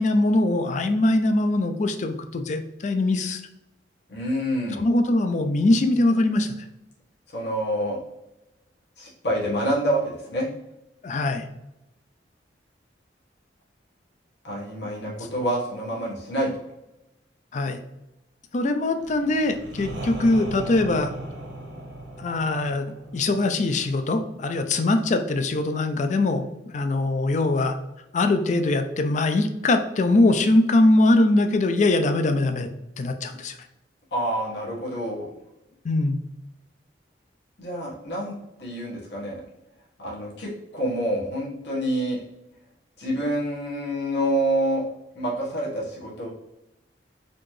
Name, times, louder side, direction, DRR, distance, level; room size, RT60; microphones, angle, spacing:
voice 1, 0.0-3.4 4.8-6.5 11.0-11.4 15.2-15.3 17.5-17.8 18.5-21.1 22.2-27.7 28.1-32.7 33.0-33.6 35.8-36.2, left 2 dB, 40° left, 8 dB, 0.4 m, -22 dB
voice 2, 4.1-4.8 7.3-8.0 9.0-10.5 14.4-16.5 34.1-35.3 37.6-39.4 40.0-42.2 43.0-44.8 45.1-46.3, right 1 dB, 65° left, -5 dB, 1.4 m, -27 dB
sound 1, 19.0-24.7, right 1 dB, 90° right, 1.0 m, -38 dB
4.2 x 2.8 x 3.1 m, 0.90 s
head